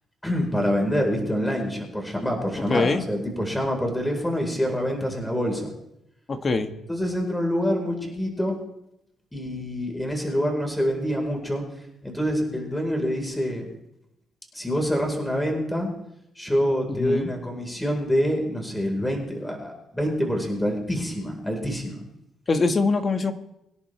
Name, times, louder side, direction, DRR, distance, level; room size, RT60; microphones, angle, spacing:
voice 1, 0.2-5.7 6.9-8.5 9.3-11.6 12.0-13.6 14.5-15.9 16.4-22.0, equal, 5° left, 2 dB, 4.3 m, -26 dB
voice 2, 2.7-3.0 6.3-6.7 16.9-17.3 22.5-23.3, left 3 dB, 35° left, 6 dB, 1.6 m, -23 dB
24.0 x 11.0 x 3.4 m, 0.80 s
cardioid pair, 90°, 0 cm